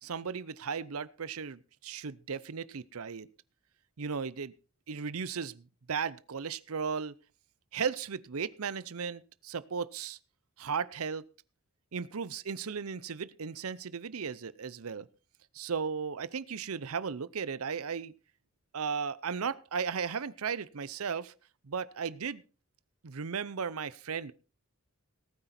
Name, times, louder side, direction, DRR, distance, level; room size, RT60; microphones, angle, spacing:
voice 1, 0.0-3.3 4.0-4.5 4.9-7.1 7.7-10.2 10.6-11.2 11.9-15.1 15.5-18.1 18.7-21.3 21.6-22.4 23.0-24.3, right 6 dB, 70° right, 19 dB, 0.7 m, -36 dB
19.0 x 9.1 x 4.3 m, 0.34 s
head